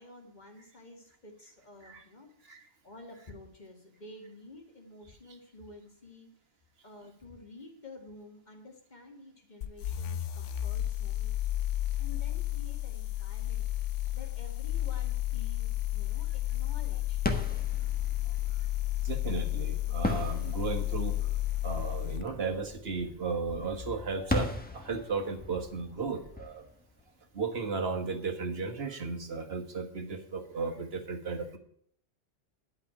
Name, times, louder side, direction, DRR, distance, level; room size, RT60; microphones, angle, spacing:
voice 1, 0.0-2.3 2.8-6.3 6.8-11.3 12.0-17.2, left 2 dB, 40° left, 2 dB, 2.3 m, -51 dB
sound 1, 9.6-22.3, left 14 dB, 90° left, 1.0 m, -32 dB
sound 2, 17.2-27.8, left 1 dB, 10° left, 1.3 m, -39 dB
voice 2, 19.0-21.2 21.6-26.6 27.3-31.6, right 4 dB, 60° right, 5 dB, 1.7 m, -35 dB
11.5 x 5.7 x 8.9 m, 0.63 s
omnidirectional pair, 1.2 m